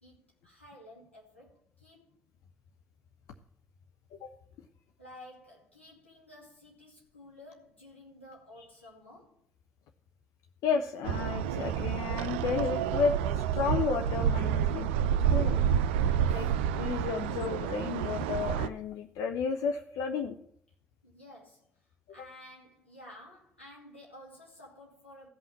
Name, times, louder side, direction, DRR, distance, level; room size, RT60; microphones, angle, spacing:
voice 1, 0.0-2.1 5.0-9.4 15.4-16.5 21.0-21.8 22.1-25.3, left 1 dB, 90° left, 2.3 m, -53 dB
voice 2, 10.6-14.9 15.3-15.6 16.3-16.5 16.8-20.4, left 6 dB, 60° left, 0.7 m, -32 dB
sound 1, 11.0-18.7, right 9 dB, 70° right, 0.4 m, -29 dB
15.5 x 5.6 x 7.3 m
figure-of-eight pair, 40°, 6 cm